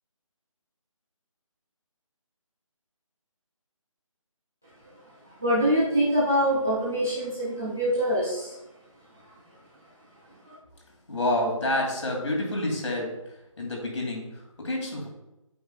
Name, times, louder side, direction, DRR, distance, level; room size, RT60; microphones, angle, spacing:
voice 1, 5.4-8.5, equal, 5° right, -12 dB, 0.4 m, -24 dB
voice 2, 11.1-13.2 13.6-15.1, left 1 dB, 60° left, 0 dB, 2.5 m, -28 dB
8.6 x 6.0 x 2.3 m, 0.94 s
figure-of-eight pair, 170°, 18 cm